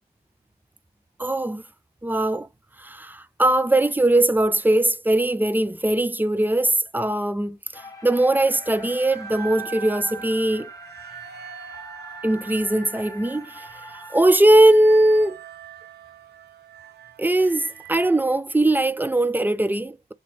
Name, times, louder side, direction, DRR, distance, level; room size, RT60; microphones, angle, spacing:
voice 1, 1.2-1.6 2.0-2.5 2.8-10.7 12.2-15.4 17.2-20.1, right 1 dB, 10° right, 0.3 m, -20 dB
sound 1, 7.7-14.2, left 1 dB, 20° left, 1.0 m, -43 dB
sound 2, 8.4-18.2, right 9 dB, 70° right, 0.5 m, -42 dB
3.0 x 2.9 x 3.0 m
cardioid pair, 65°, 17 cm